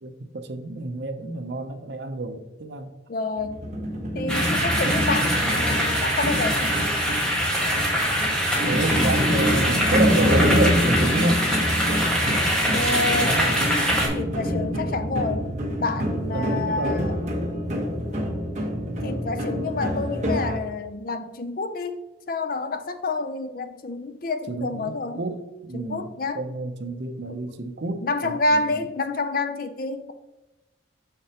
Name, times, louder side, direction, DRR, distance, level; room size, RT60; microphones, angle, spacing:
voice 1, 0.0-2.9 8.6-11.4 12.9-13.5 16.3-17.0 24.5-28.9, right 2 dB, 60° right, 7 dB, 0.7 m, -29 dB
voice 2, 3.1-3.6 4.1-6.9 12.7-13.4 14.1-15.5 15.8-17.2 19.0-22.0 22.3-25.2 25.7-26.4 27.3-27.4 28.0-30.1, left 3 dB, 45° left, 9 dB, 0.5 m, -28 dB
sound 1, 3.4-20.6, equal, 35° right, 1.3 m, -26 dB
sound 2, 4.3-14.1, equal, 5° left, 1.6 m, -24 dB
6.8 x 6.6 x 2.9 m, 1.0 s
head